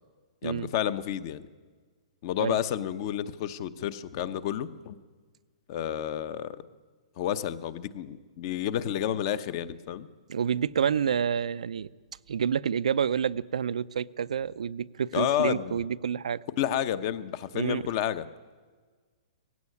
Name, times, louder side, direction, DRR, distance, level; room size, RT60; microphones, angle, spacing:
voice 1, 0.4-1.5 2.2-5.0 5.7-6.6 7.2-10.1 15.1-15.8 16.6-18.2, left 10 dB, 40° left, 0.8 m, -30 dB
voice 2, 10.3-11.9 12.3-16.4 17.5-17.8, right 7 dB, 85° right, 0.5 m, -28 dB
18.0 x 15.5 x 9.7 m
hypercardioid pair, 155°, 4 cm